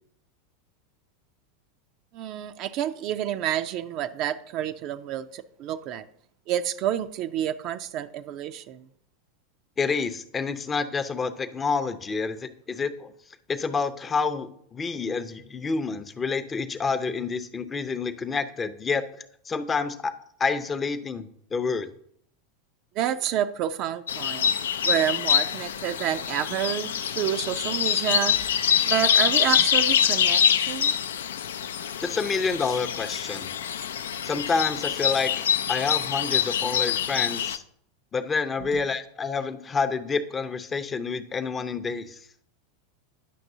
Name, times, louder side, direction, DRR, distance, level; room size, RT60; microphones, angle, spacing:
voice 1, 2.1-6.1 6.5-8.8 22.9-24.5 24.8-30.9 38.6-38.8, right 11 dB, 50° right, 9 dB, 0.4 m, -29 dB
voice 2, 9.8-13.1 13.5-20.1 20.4-21.9 32.0-33.5 34.2-37.6 38.1-42.3, left 4 dB, 25° left, 12 dB, 0.6 m, -28 dB
sound 1, 24.1-37.6, left 8 dB, 75° left, 0.3 m, -25 dB
10.0 x 5.9 x 2.7 m, 0.67 s
hypercardioid pair, 90°, 0 cm